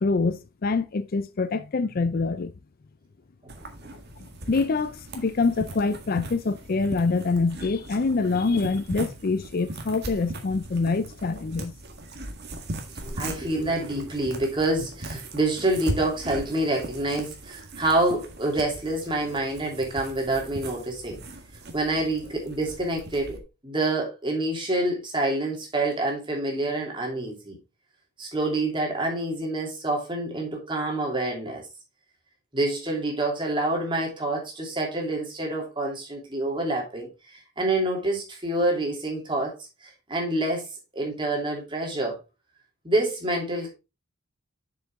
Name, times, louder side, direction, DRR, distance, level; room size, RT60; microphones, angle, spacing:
voice 1, 0.0-2.5 4.5-11.7, left 4 dB, 45° left, 0.4 m, -25 dB
sound 1, 3.5-23.4, right 1 dB, 50° right, 1.7 m, -39 dB
voice 2, 13.0-21.2 21.7-27.6 28.2-31.6 32.5-39.5 39.8-40.7 40.9-42.2 42.8-43.7, right 2 dB, 25° right, 2.9 m, -27 dB
7.0 x 6.9 x 3.5 m
head